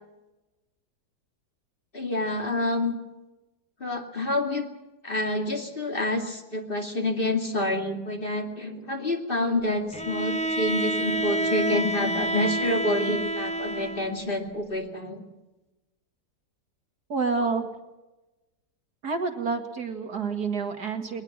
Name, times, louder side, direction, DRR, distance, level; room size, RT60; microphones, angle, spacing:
voice 1, 1.9-3.0 3.8-4.7 5.0-15.2, left 1 dB, 30° left, 3 dB, 2.6 m, -28 dB
Bowed string instrument, 9.9-14.2, right 1 dB, 5° left, 0.7 m, -28 dB
voice 2, 17.1-17.7 19.0-21.2, right 4 dB, 60° right, 6 dB, 2.5 m, -28 dB
21.5 x 20.5 x 7.4 m, 1.1 s
omnidirectional pair, 1.9 m